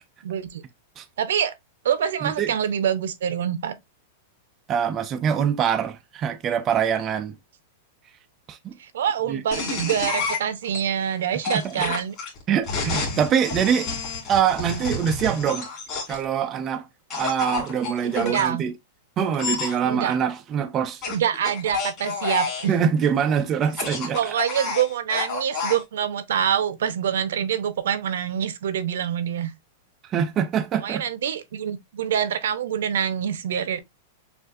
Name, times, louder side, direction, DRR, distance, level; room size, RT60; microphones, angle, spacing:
voice 1, 0.2-0.6 1.2-1.5 1.8-3.7 8.8-12.2 18.0-18.6 19.8-20.1 21.1-22.7 24.1-29.5 30.8-33.8, right 9 dB, 75° right, 0.7 m, -25 dB
voice 2, 2.2-2.5 4.7-7.3 8.5-8.7 9.3-9.4 11.5-11.7 12.5-13.9 14.3-15.7 16.1-16.9 17.1-18.7 19.2-21.0 22.7-24.3 30.1-31.1, right 8 dB, 20° right, 0.3 m, -24 dB
sound 1, 9.5-10.8 11.4-16.2 17.1-18.5 19.3-19.8 21.0-22.7 23.6-25.8, left 4 dB, 25° left, 2.0 m, -29 dB
6.2 x 2.5 x 2.4 m
supercardioid pair, 170°, 0 cm